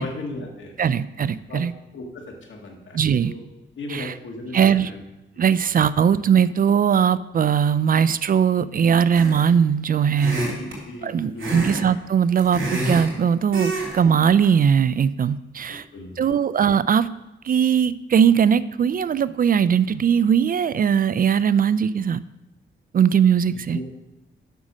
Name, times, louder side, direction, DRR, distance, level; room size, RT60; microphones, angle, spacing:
voice 1, 0.0-0.8 1.5-1.6 1.9-3.4 3.8-5.0 5.3-5.4 10.3-11.7 15.7-16.4 23.4-23.8, left 2 dB, 70° left, 1 dB, 2.0 m, -36 dB
voice 2, 0.8-1.7 2.9-3.3 3.9-4.1 4.5-4.9 5.4-10.4 11.0-15.9 16.2-17.1 17.4-22.2 22.9-23.8, right 7 dB, 45° right, 16 dB, 0.4 m, -20 dB
sound 1, 9.1-9.6 10.1-10.8 11.4-11.8 12.1-13.1 13.5-13.9 14.2-14.5, right 2 dB, 80° right, 3.5 m, -27 dB
8.2 x 6.2 x 6.2 m, 0.94 s
cardioid pair, 85°, 20 cm